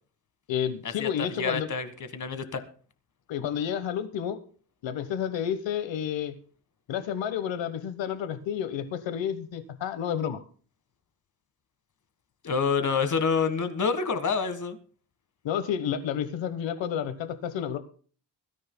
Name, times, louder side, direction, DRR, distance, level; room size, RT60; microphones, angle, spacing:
voice 1, 0.5-1.7 3.3-4.4 4.8-6.3 6.9-10.4 15.4-17.8, left 9 dB, 85° left, 11 dB, 1.2 m, -30 dB
voice 2, 1.4-2.6 12.4-14.8, left 5 dB, 40° left, 10 dB, 1.6 m, -27 dB
22.5 x 13.5 x 2.2 m, 0.42 s
cardioid pair, 125°, 44 cm